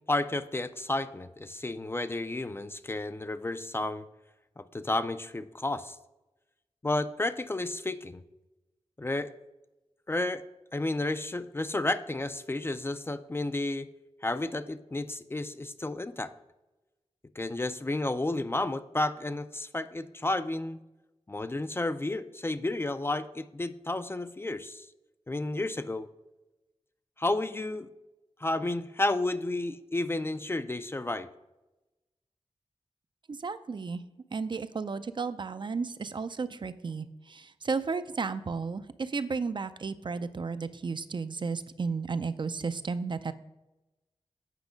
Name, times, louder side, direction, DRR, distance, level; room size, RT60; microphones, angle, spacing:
voice 1, 0.1-4.0 4.6-6.0 6.8-8.2 9.0-9.3 10.1-10.4 10.7-13.9 14.2-16.3 17.4-20.8 21.3-24.9 25.3-26.1 27.2-27.9 28.4-31.3, left 2 dB, 20° left, 12 dB, 0.3 m, -31 dB
voice 2, 33.3-34.0 34.3-43.3, right 4 dB, 45° right, 12 dB, 0.4 m, -33 dB
8.3 x 5.2 x 5.0 m, 1.0 s
wide cardioid pair, 100°, 11 cm